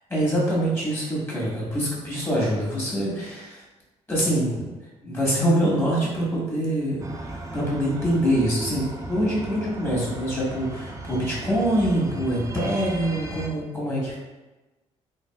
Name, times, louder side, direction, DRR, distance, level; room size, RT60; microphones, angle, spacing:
voice 1, 0.1-3.6 4.1-4.7 5.0-14.2, right 1 dB, 20° left, -6 dB, 1.4 m, -25 dB
sound 1, 7.0-13.5, right 2 dB, 25° right, 0.5 m, -36 dB
3.4 x 2.5 x 2.2 m, 1.1 s
cardioid pair, 75°, 12 cm